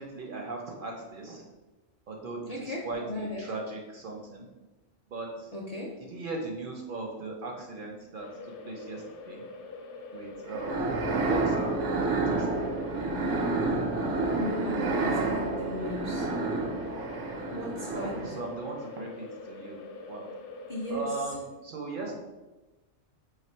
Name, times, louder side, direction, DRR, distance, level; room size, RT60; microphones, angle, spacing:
voice 1, 0.0-1.4 2.1-4.5 5.1-5.5 6.1-9.4 10.1-12.6 17.9-19.8 20.1-20.3 20.9-22.1, right 3 dB, 60° right, 1 dB, 0.6 m, -38 dB
voice 2, 2.5-3.5 5.5-5.9 14.2-16.3 17.5-18.1 20.7-21.2, left 2 dB, 50° left, -4 dB, 0.4 m, -36 dB
sound 1, 8.2-21.2, left 3 dB, 70° left, 0.8 m, -44 dB
sound 2, 10.5-18.5, right 3 dB, 85° right, 0.9 m, -29 dB
3.2 x 2.4 x 4.3 m, 1.1 s
omnidirectional pair, 1.2 m